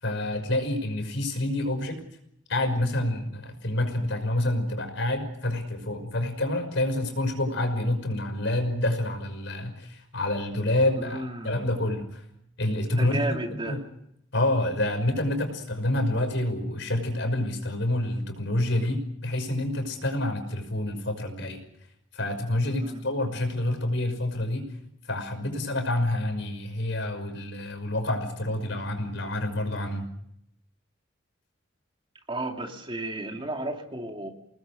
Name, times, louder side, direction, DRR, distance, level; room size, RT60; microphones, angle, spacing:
voice 1, 0.0-2.0 2.5-12.2 12.6-13.4 13.6-13.8 14.3-21.6 22.1-24.7 25.1-30.1, left 1 dB, 65° left, 7 dB, 5.8 m, -28 dB
voice 2, 11.0-11.7 13.0-13.8 22.8-23.0 32.3-34.3, right 2 dB, 25° right, 3 dB, 2.7 m, -33 dB
29.0 x 20.0 x 6.5 m, 0.73 s
head